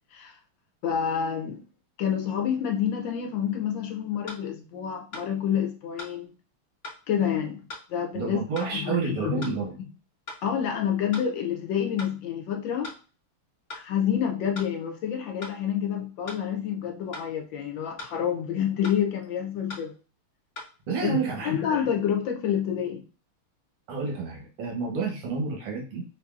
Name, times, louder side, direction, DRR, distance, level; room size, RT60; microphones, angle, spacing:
voice 1, 0.8-1.6 2.0-6.3 7.1-7.6 7.9-9.6 10.4-12.9 13.7-19.9 21.0-21.2 21.4-23.0, left 8 dB, 75° left, 1.2 m, -28 dB
sound 1, 3.5-3.6 4.3-4.4 5.1-5.3 6.0-6.2 6.8-7.0 7.7-7.9 8.6-8.7 9.4-9.6 10.3-10.4 11.1-11.3 12.0-12.2 12.8-13.0 13.7-13.9 14.5-14.7 15.4-15.6 16.3-16.4 17.1-17.3 18.0-18.2 18.8-19.0 19.7-19.9 20.6-20.7, left 2 dB, 30° left, 1.0 m, -40 dB
voice 2, 8.1-9.7 20.9-21.8 23.9-26.0, right 5 dB, 85° right, 1.9 m, -30 dB
5.0 x 2.6 x 2.4 m
omnidirectional pair, 2.4 m